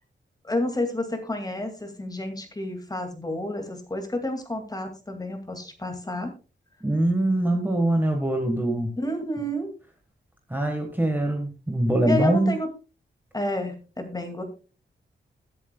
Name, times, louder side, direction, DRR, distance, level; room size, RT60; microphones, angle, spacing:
voice 1, 0.4-6.3 9.0-9.7 12.0-12.7 13.3-14.4, left 1 dB, 20° left, 5 dB, 2.1 m, -30 dB
voice 2, 6.8-9.0 10.5-12.5, right 1 dB, 10° right, 3 dB, 1.3 m, -23 dB
21.5 x 7.6 x 2.2 m, 0.33 s
wide cardioid pair, 165°, 20 cm